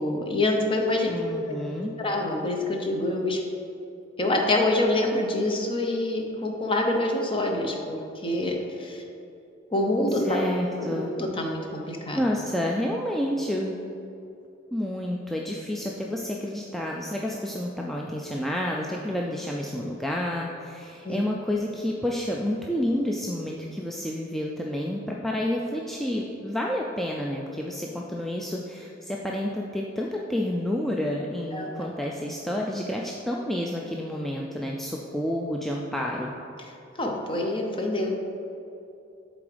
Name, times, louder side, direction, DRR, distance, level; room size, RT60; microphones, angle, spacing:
voice 1, 0.0-1.1 1.7-3.4 4.2-9.0 9.7-10.4 10.8-12.2 21.0-21.2 31.5-31.9 36.9-38.1, left 1 dB, 25° left, 1 dB, 0.7 m, -26 dB
voice 2, 1.0-1.9 10.3-11.1 12.1-13.8 14.7-36.3, left 1 dB, ahead, -2 dB, 0.3 m, -29 dB
7.1 x 3.9 x 5.0 m, 2.6 s
head